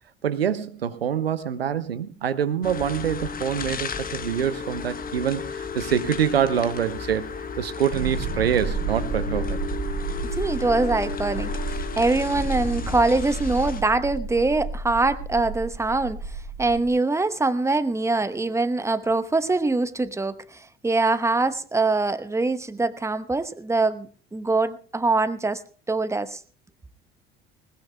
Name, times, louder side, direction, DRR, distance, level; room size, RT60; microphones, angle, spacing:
voice 1, 0.2-9.6, right 8 dB, 85° right, 0.7 m, -25 dB
sound 1, 2.6-13.8, left 5 dB, 30° left, 1.1 m, -34 dB
sound 2, 7.9-16.9, right 4 dB, 60° right, 2.7 m, -32 dB
voice 2, 10.3-25.6 25.9-26.4, right 3 dB, 10° right, 1.0 m, -24 dB
21.0 x 19.5 x 2.2 m
figure-of-eight pair, 60°, 29 cm